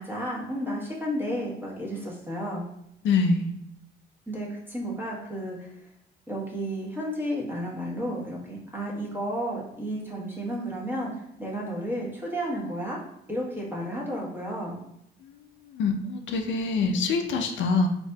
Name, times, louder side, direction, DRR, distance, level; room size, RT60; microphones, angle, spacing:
voice 1, 0.0-2.7 4.3-5.9 6.3-13.0 13.3-14.8, equal, 10° right, -4 dB, 1.1 m, -32 dB
voice 2, 3.0-3.5 15.2-15.4 15.7-17.9, left 4 dB, 70° left, 5 dB, 0.4 m, -25 dB
4.1 x 2.7 x 2.3 m, 0.78 s
cardioid pair, 90°, 20 cm